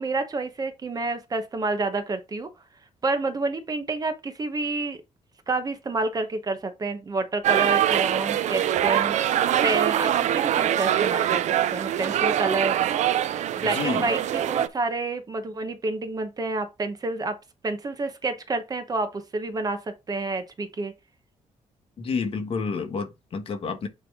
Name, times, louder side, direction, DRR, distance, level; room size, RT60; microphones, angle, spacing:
voice 1, 0.0-2.5 3.0-5.0 5.5-9.2 9.6-12.8 13.6-17.4 17.6-20.9, right 3 dB, 30° right, 0.9 m, -29 dB
sound 1, 7.4-14.7, right 11 dB, 70° right, 0.5 m, -23 dB
voice 2, 13.7-14.1 22.0-23.9, left 5 dB, 45° left, 1.4 m, -29 dB
8.9 x 3.4 x 3.6 m
cardioid pair, 145°, 13 cm